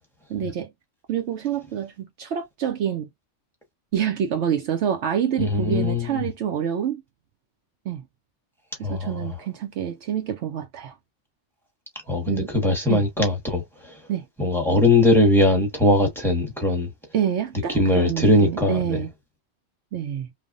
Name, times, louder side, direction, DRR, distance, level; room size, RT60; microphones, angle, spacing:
voice 1, 0.3-0.7 1.1-3.1 3.9-7.0 7.9-8.0 8.8-10.9 12.3-12.5 12.9-13.0 14.1-14.2 17.1-19.1 19.9-20.3, right 9 dB, 70° right, 0.8 m, -27 dB
voice 2, 5.4-6.2 8.8-9.3 12.1-14.0 14.4-16.9 17.7-19.0, left 1 dB, ahead, 1.0 m, -20 dB
3.3 x 2.1 x 2.4 m
omnidirectional pair, 1.2 m